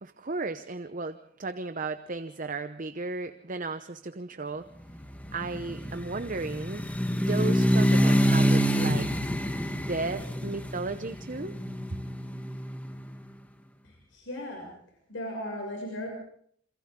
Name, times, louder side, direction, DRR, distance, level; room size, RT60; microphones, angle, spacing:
voice 1, 0.0-4.7 5.3-6.8 7.2-9.1 9.7-11.5, right 3 dB, 45° right, 10 dB, 0.8 m, -34 dB
sound 1, 5.0-13.0, equal, 10° left, 1.5 m, -26 dB
voice 2, 13.8-14.7 15.1-16.1, left 1 dB, 80° left, 0 dB, 6.4 m, -37 dB
28.5 x 26.5 x 3.8 m, 0.63 s
head